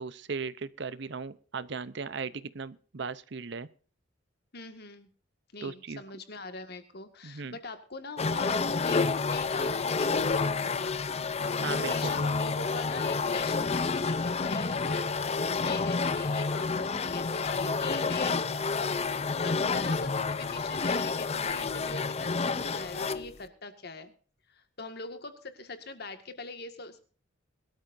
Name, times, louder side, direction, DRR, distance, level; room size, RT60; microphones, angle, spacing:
voice 1, 0.0-3.7 5.6-6.0 7.2-7.6 11.6-12.2, right 5 dB, 65° right, 15 dB, 0.8 m, -37 dB
voice 2, 4.5-5.1 5.5-15.1 15.6-19.0 19.3-24.1 24.5-27.0, left 3 dB, 55° left, 8 dB, 1.9 m, -42 dB
sound 1, 8.2-23.3, left 4 dB, 35° left, 0.6 m, -29 dB
21.5 x 13.0 x 2.7 m, 0.42 s
head